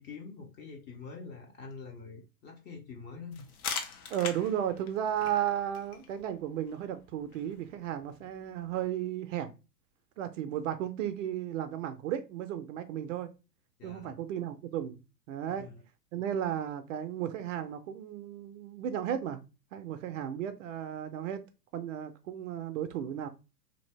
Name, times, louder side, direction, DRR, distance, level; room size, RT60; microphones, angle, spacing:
voice 1, 0.0-3.5 13.8-14.2 15.5-15.8, left 4 dB, 20° left, 0.6 m, -45 dB
sound 1, 3.3-8.8, left 6 dB, 60° left, 0.9 m, -43 dB
voice 2, 4.1-9.5 10.2-13.3 13.8-15.0 15.3-15.7 16.1-19.4 19.7-21.4 21.7-23.3, right 10 dB, 55° right, 0.5 m, -34 dB
2.7 x 2.7 x 3.1 m
hypercardioid pair, 110°, 49 cm